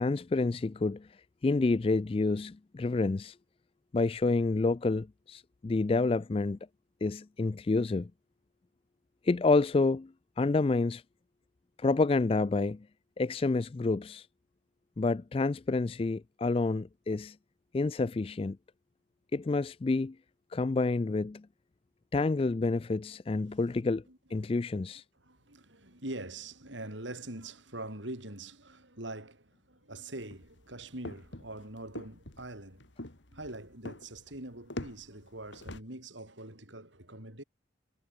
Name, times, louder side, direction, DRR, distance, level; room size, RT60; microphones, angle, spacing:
voice 1, 0.0-3.4 3.9-6.6 7.0-8.1 9.2-11.0 11.8-12.9 13.2-14.3 15.0-17.4 17.7-18.6 19.3-20.2 20.5-21.5 22.1-24.0 24.3-25.0, left 3 dB, 30° left, 0.3 m, -28 dB
voice 2, 24.4-24.8 25.2-32.9 33.3-37.4, right 2 dB, 80° right, 6.9 m, -44 dB
sound 1, 30.2-35.8, left 1 dB, 75° left, 2.7 m, -44 dB
head